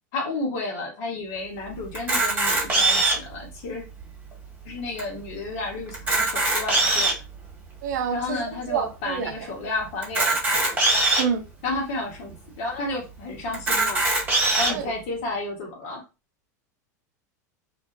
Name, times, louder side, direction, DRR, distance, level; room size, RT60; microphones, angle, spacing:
voice 1, 0.1-3.9 4.6-7.1 8.1-10.7 11.6-14.1 14.6-16.0, left 2 dB, 65° left, 1.2 m, -32 dB
Camera, 1.9-3.3 4.0-4.1 4.3-4.4 5.0-5.1 5.9-7.3 7.9-8.0 10.0-11.2 12.0-12.1 12.3-12.4 13.5-14.7, right 2 dB, 20° right, 1.2 m, -21 dB
voice 2, 7.8-9.5 11.2-11.4 14.7-14.9, right 7 dB, 80° right, 0.5 m, -28 dB
2.5 x 2.2 x 2.5 m
hypercardioid pair, 100°, 10 cm